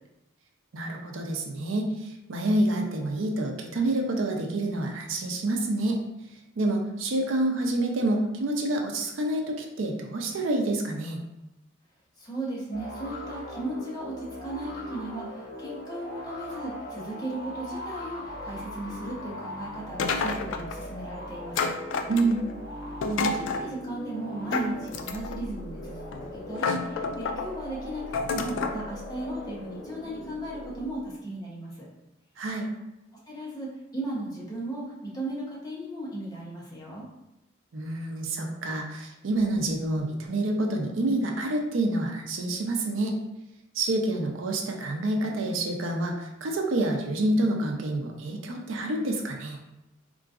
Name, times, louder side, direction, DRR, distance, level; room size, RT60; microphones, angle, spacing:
voice 1, 0.7-6.0 6.6-11.2 22.1-22.4 32.4-32.7 37.7-43.2 43.7-49.6, right 1 dB, 80° right, 2 dB, 0.5 m, -28 dB
voice 2, 12.2-21.7 23.0-28.1 28.3-31.9 33.3-37.0, right 1 dB, 20° left, -5 dB, 0.8 m, -36 dB
sound 1, 12.7-31.1, left 1 dB, 50° left, 0.7 m, -40 dB
sound 2, 20.0-20.8 21.6-22.5 23.0-23.7 24.5-25.4 26.1-26.2 26.6-27.5 28.1-28.8, left 4 dB, 70° left, 0.3 m, -29 dB
3.7 x 2.5 x 2.4 m, 0.93 s
head